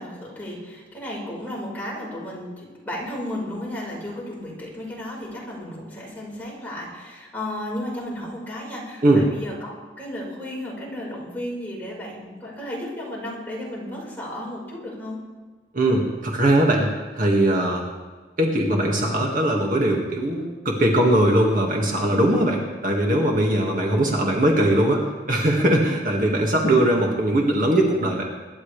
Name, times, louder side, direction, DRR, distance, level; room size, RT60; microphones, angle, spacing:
voice 1, 0.0-15.2, left 1 dB, 10° left, -5 dB, 5.0 m, -34 dB
voice 2, 15.7-17.9 18.4-28.2, right 1 dB, 50° right, 0 dB, 2.0 m, -20 dB
24.5 x 11.5 x 3.4 m, 1.4 s
head